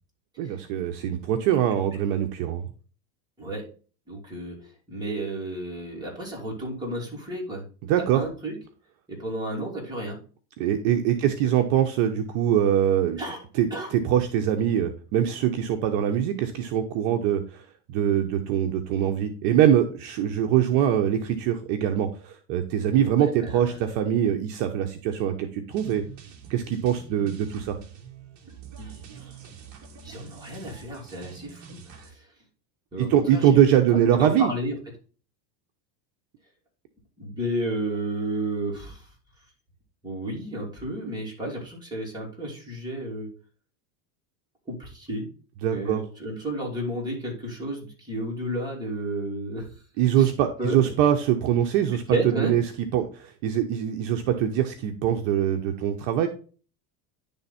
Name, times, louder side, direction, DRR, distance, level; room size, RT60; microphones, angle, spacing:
voice 1, 0.4-2.7 7.8-8.2 10.6-13.2 13.6-17.6 17.9-26.0 26.5-27.8 33.0-34.5 45.6-46.0 50.0-52.0 52.4-52.6 52.9-56.3, right 10 dB, 55° right, 5 dB, 0.9 m, -23 dB
voice 2, 4.1-7.6 8.1-8.6 9.1-10.2 13.2-13.4 13.7-13.9 23.0-23.8 28.8-29.4 30.0-32.3 32.9-33.6 34.2-34.8 37.2-39.1 40.0-43.3 44.7-45.3 45.7-49.7 50.2-50.3 50.6-50.8 52.1-52.5, right 1 dB, 10° right, -4 dB, 2.9 m, -32 dB
sound 1, 25.7-32.1, right 8 dB, 35° right, 1.3 m, -46 dB
10.5 x 3.5 x 4.2 m, 0.38 s
supercardioid pair, 145°, 49 cm